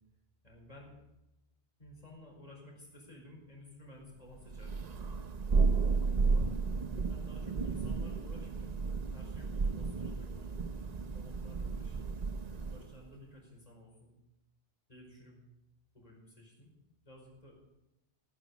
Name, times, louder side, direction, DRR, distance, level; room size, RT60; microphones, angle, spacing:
voice 1, 0.4-0.9 1.8-5.2 6.2-6.5 7.1-8.8 9.1-10.6 11.1-12.1 12.6-14.1 14.9-15.3 15.9-16.7 17.0-17.6, left 1 dB, 35° left, -1 dB, 5.2 m, -54 dB
Thunder, 4.5-12.9, right 4 dB, 40° right, 0.8 m, -33 dB
17.0 x 10.5 x 7.2 m, 0.93 s
omnidirectional pair, 1.2 m